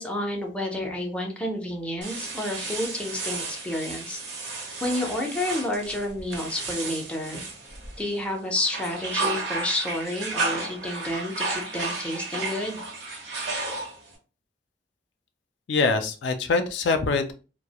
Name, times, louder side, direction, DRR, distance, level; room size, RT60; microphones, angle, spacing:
voice 1, 0.0-4.2 4.8-7.4 8.0-12.8, left 1 dB, 5° left, 0 dB, 0.5 m, -30 dB
sound 1, 2.0-8.2 8.6-14.1, right 3 dB, 70° right, 0.8 m, -33 dB
voice 2, 15.7-17.3, left 4 dB, 70° left, 7 dB, 0.4 m, -24 dB
2.3 x 2.0 x 2.8 m, 0.34 s
head